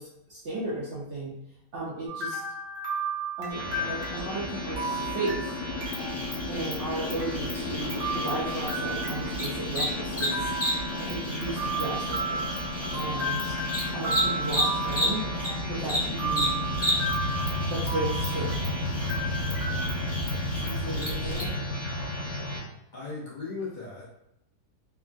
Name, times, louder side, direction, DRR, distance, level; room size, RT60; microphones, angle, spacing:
voice 1, 0.0-1.3 1.7-2.4 3.4-5.6 6.5-10.5 11.0-12.5 13.0-13.5 13.9-15.2 15.7-16.5 17.7-18.8 20.4-21.5, right 2 dB, 65° right, -5 dB, 0.7 m, -35 dB
sound 1, 2.1-6.3 6.6-6.7 7.2-7.3 7.9-9.9 10.2-11.2 11.6-15.8 16.2-18.7 19.1-19.8, right 3 dB, 90° right, 1.4 m, -34 dB
sound 2, 3.5-22.6, left 1 dB, 65° left, 1.4 m, -32 dB
Cricket, 5.8-15.5 15.8-21.4, equal, 15° left, 0.5 m, -33 dB
voice 2, 20.9-21.6 22.9-24.1, left 3 dB, 80° left, -7 dB, 0.4 m, -38 dB
3.4 x 2.2 x 2.5 m, 0.80 s
omnidirectional pair, 1.8 m